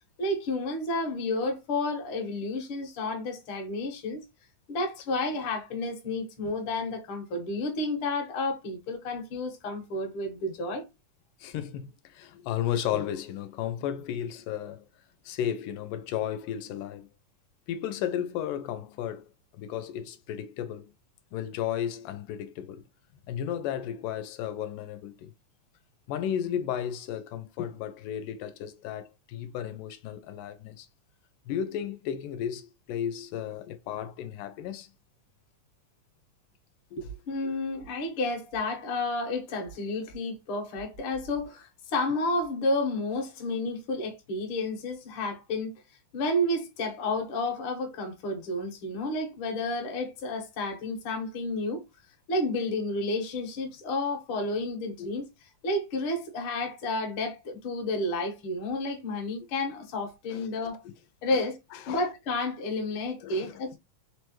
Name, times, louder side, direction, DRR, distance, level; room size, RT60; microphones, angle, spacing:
voice 1, 0.2-4.2 4.7-10.8 37.0-45.7 46.1-51.8 52.3-55.3 55.6-60.8 61.2-61.6 61.9-63.8, left 2 dB, 55° left, 1.6 m, -31 dB
voice 2, 11.4-14.8 15.2-17.1 17.7-19.3 19.5-20.9 21.3-22.8 23.3-25.3 26.1-30.9 31.5-34.9 37.0-37.1 55.0-55.1 60.3-60.7 61.3-61.5 61.7-62.1 63.2-63.6, left 10 dB, 85° left, 2.1 m, -34 dB
4.9 x 3.2 x 3.0 m
omnidirectional pair, 3.8 m